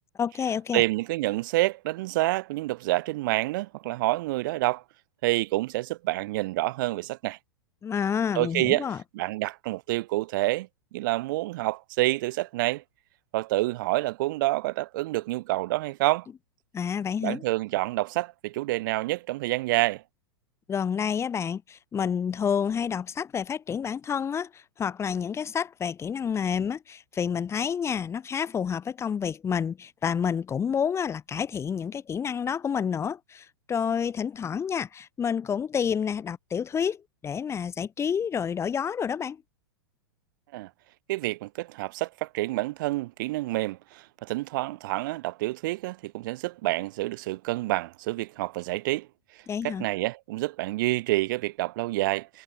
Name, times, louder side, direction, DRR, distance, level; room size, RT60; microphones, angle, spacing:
voice 1, 0.2-0.8 7.8-9.0 16.7-17.4 20.7-39.4 49.5-49.9, left 7 dB, 20° left, 4.8 m, -29 dB
voice 2, 0.7-4.8 5.2-7.4 8.3-8.9 9.1-12.8 13.3-16.3 17.2-20.0 40.5-40.7 41.1-49.1 49.6-52.4, right 19 dB, 55° right, 1.4 m, -28 dB
hypercardioid pair, 105°, 13 cm